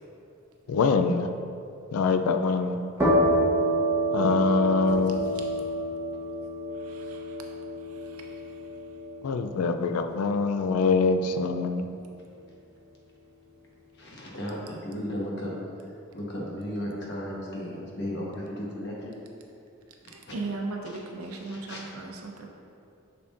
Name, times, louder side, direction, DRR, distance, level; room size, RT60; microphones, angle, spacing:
voice 1, 0.7-1.3 1.9-2.8 4.1-5.2 9.2-11.9, left 4 dB, 85° left, 8 dB, 0.4 m, -24 dB
sound 1, 3.0-10.5, right 1 dB, 10° right, 1.1 m, -28 dB
voice 2, 6.9-7.2 8.1-8.3 20.1-22.5, right 3 dB, 90° right, 2 dB, 0.7 m, -37 dB
voice 3, 14.0-15.5 15.8-19.2 20.0-20.4 20.8-21.0 21.4-21.9, equal, 50° left, -4 dB, 1.1 m, -35 dB
7.0 x 6.0 x 2.5 m, 2.6 s
head